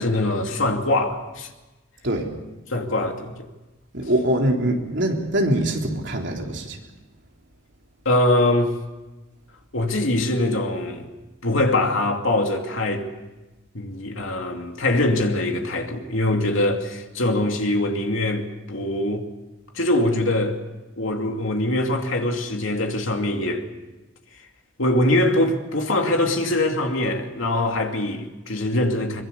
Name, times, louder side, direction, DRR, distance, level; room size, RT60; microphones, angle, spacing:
voice 1, 0.0-1.5 2.7-3.5 8.0-8.7 9.7-11.1 11.4-13.1 13.7-19.2 19.7-20.6 21.0-23.7 24.8-29.2, left 1 dB, 80° left, 2.7 m, -23 dB
voice 2, 2.0-2.3 3.9-6.8, right 1 dB, 60° right, 3.6 m, -23 dB
23.5 x 22.5 x 6.9 m
head